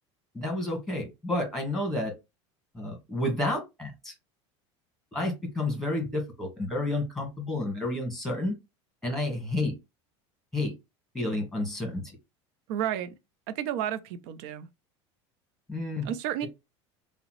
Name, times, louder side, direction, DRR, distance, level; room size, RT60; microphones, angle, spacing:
voice 1, 0.3-2.1 2.7-4.1 5.1-8.6 9.0-9.7 10.5-10.7 11.1-12.0 15.7-16.1, left 2 dB, 5° left, 1.6 m, -30 dB
voice 2, 12.7-13.2 13.5-14.7 16.0-16.5, right 10 dB, 70° right, 0.5 m, -31 dB
3.5 x 2.0 x 3.0 m
supercardioid pair, 105°, 15 cm